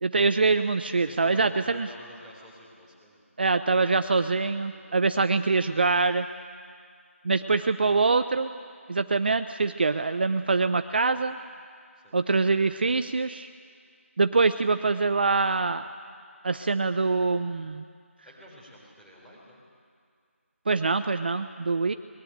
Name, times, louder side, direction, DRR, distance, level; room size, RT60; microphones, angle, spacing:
voice 1, 0.0-1.9 3.4-6.3 7.2-8.5 8.9-11.4 12.1-13.5 14.2-15.8 16.4-17.9 20.7-21.9, right 4 dB, 45° right, 10 dB, 0.7 m, -24 dB
voice 2, 1.0-3.3 3.7-5.2 11.9-12.2 18.2-19.6, equal, 5° left, -6 dB, 4.4 m, -50 dB
24.0 x 21.5 x 9.0 m, 2.1 s
figure-of-eight pair, 165°, 8 cm